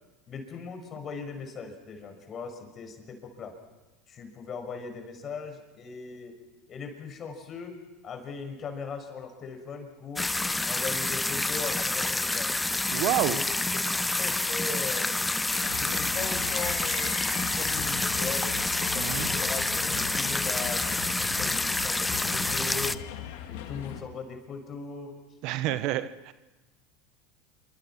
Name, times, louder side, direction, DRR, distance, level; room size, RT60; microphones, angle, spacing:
voice 1, 0.3-3.5 4.1-6.3 6.7-7.8 8.0-10.3 10.7-12.5 13.2-13.4 13.7-13.9 14.2-15.1 15.7-17.1 17.5-18.5 18.9-20.9 21.1-21.6 21.8-23.0 23.5-25.2 25.6-25.8, left 5 dB, 35° left, 5 dB, 6.0 m, -39 dB
sound 1, 10.2-23.0, left 2 dB, 10° left, 0.8 m, -28 dB
voice 2, 12.9-13.4 18.9-19.3 25.4-26.3, right 15 dB, 55° right, 14 dB, 1.1 m, -28 dB
sound 2, 15.5-24.0, left 11 dB, 65° left, 2.8 m, -39 dB
27.5 x 25.5 x 6.0 m, 1.1 s
hypercardioid pair, 85°, 0 cm